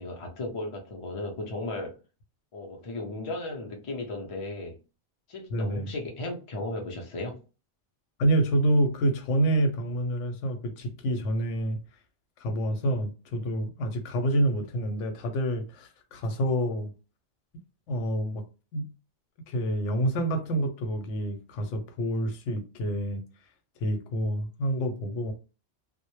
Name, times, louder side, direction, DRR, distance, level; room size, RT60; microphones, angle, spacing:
voice 1, 0.0-1.9 2.5-4.8 5.3-7.4, left 2 dB, 40° left, 0.4 m, -35 dB
voice 2, 5.5-5.9 8.2-11.8 12.4-16.9 17.9-18.4 18.7-18.9 19.5-23.2 23.8-25.3, right 1 dB, 85° left, 0.9 m, -27 dB
2.1 x 2.0 x 2.9 m
omnidirectional pair, 1.2 m